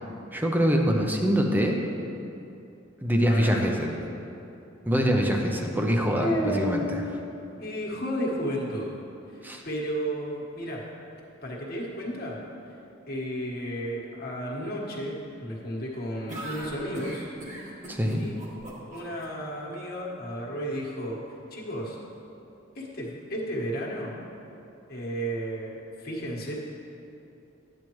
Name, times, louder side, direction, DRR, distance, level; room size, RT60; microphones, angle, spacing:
voice 1, 0.3-1.8 3.0-3.9 4.9-6.8 9.4-9.6 17.9-18.2, equal, 10° right, 2 dB, 0.7 m, -24 dB
voice 2, 3.2-3.6 6.2-7.1 7.5-9.0 9.3-10.8 11.4-12.4 13.1-17.3 18.2-18.4 18.9-21.2 21.5-22.0 22.7-24.1 24.9-26.5, equal, 50° left, -3 dB, 1.5 m, -32 dB
sound 1, 16.3-19.3, right 1 dB, 40° right, 1.5 m, -39 dB
11.0 x 8.7 x 3.1 m, 2.7 s
head